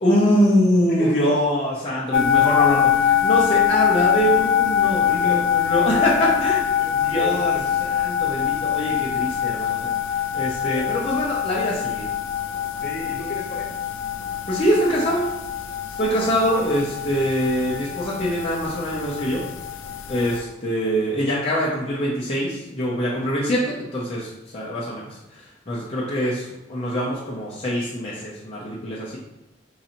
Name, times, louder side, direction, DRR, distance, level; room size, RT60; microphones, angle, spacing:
voice 1, 0.0-6.6 7.0-9.9 10.3-12.0 14.5-15.3 16.0-19.4 20.1-29.2, equal, 30° left, -7 dB, 0.7 m, -24 dB
voice 2, 0.9-1.4 5.0-5.4 6.7-7.6 10.6-10.9 12.8-13.8 20.2-20.5, left 1 dB, 50° left, -3 dB, 1.0 m, -34 dB
sound 1, 2.1-20.4, left 10 dB, 85° left, 0.4 m, -23 dB
3.9 x 2.7 x 4.3 m, 0.95 s
head